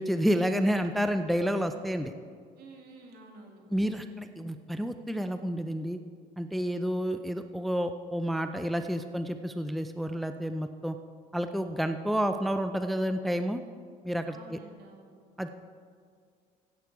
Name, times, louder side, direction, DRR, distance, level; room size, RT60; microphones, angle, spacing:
voice 1, 0.0-2.1 3.7-6.0 6.4-11.0 11.3-13.6 14.0-14.6 15.4-15.5, equal, ahead, 8 dB, 0.5 m, -30 dB
voice 2, 2.6-3.6 14.2-15.2, right 2 dB, 65° right, 1 dB, 2.4 m, -50 dB
16.0 x 8.3 x 4.7 m, 2.1 s
cardioid pair, 110°, 17 cm